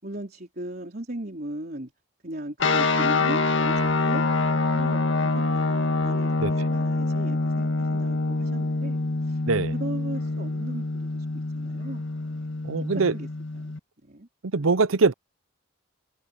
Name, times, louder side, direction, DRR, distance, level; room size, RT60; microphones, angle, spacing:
voice 1, 0.0-1.9 2.2-4.3 4.7-9.4 9.7-12.5 12.9-13.3 13.5-13.7 14.0-14.3, right 1 dB, 45° right, 4.0 m, -37 dB
sound 1, 2.6-13.8, left 3 dB, 65° left, 1.9 m, -25 dB
voice 2, 12.6-13.1 14.4-15.1, right 4 dB, 75° right, 0.8 m, -22 dB
head